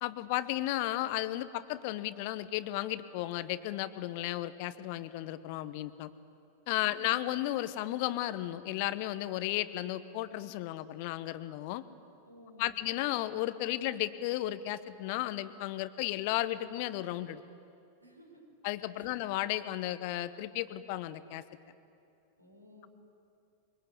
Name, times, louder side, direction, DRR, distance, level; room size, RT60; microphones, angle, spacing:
voice 1, 0.0-6.1 6.7-11.8 12.6-17.4 18.6-21.4, left 15 dB, 45° left, 15 dB, 1.1 m, -34 dB
voice 2, 6.8-7.1 12.2-12.8 18.0-18.4 18.9-19.1 22.4-22.9, equal, 90° right, 0 dB, 6.3 m, -56 dB
24.0 x 23.5 x 8.4 m, 2.6 s
figure-of-eight pair, 90°, 0 cm